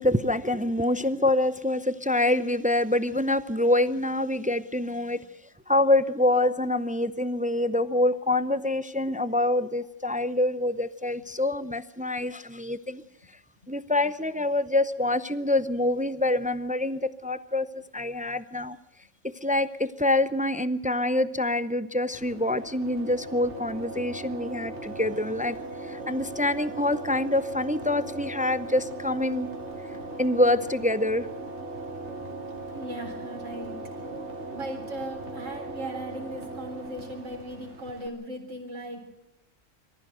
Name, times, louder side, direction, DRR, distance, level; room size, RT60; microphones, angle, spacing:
voice 1, 0.0-5.2 5.7-13.0 13.7-18.8 19.2-25.6 25.8-29.5 30.2-31.3, left 1 dB, 10° right, 14 dB, 0.4 m, -26 dB
sound 1, 22.1-38.1, right 2 dB, 60° right, 2.8 m, -38 dB
voice 2, 32.7-34.1 34.5-39.1, right 1 dB, 75° right, 1 dB, 4.1 m, -38 dB
23.5 x 14.5 x 7.9 m, 0.90 s
omnidirectional pair, 1.3 m